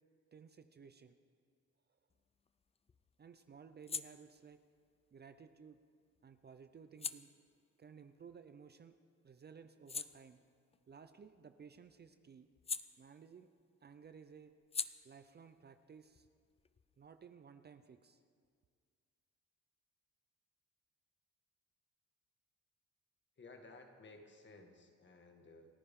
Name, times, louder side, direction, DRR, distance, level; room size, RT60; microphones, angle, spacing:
voice 1, 0.3-1.2 1.9-2.0 3.2-4.6 5.1-5.8 6.2-7.3 7.8-8.9 9.2-10.4 10.9-12.5 13.0-13.5 13.8-14.5 15.0-16.3 17.0-18.2, right 6 dB, 35° right, 10 dB, 0.6 m, -57 dB
sound 1, 2.1-9.0 9.4-13.6 13.9-17.3, left 5 dB, 20° left, 0.4 m, -49 dB
voice 2, 23.4-25.7, left 3 dB, 40° left, 4 dB, 1.8 m, -57 dB
28.5 x 9.8 x 3.7 m, 2.1 s
cardioid pair, 90°, 30 cm